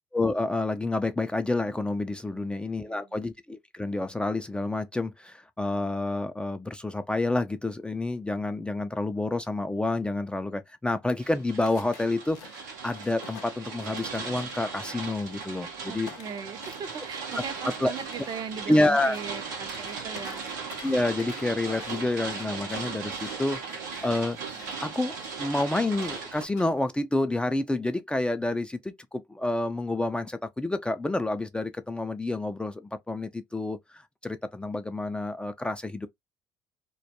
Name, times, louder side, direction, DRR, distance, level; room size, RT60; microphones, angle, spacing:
voice 1, 0.1-16.1 17.8-17.9 18.7-19.2 20.8-23.6 24.0-24.4 24.8-36.1, left 2 dB, 10° left, 0.3 m, -29 dB
voice 2, 2.3-3.1 15.9-20.5, right 6 dB, 45° right, 0.5 m, -39 dB
sound 1, 11.2-26.4, right 5 dB, 90° right, 0.6 m, -38 dB
sound 2, 11.6-15.7 16.0-26.9, left 9 dB, 80° left, 0.4 m, -51 dB
2.2 x 2.1 x 2.8 m
hypercardioid pair, 55°, 10 cm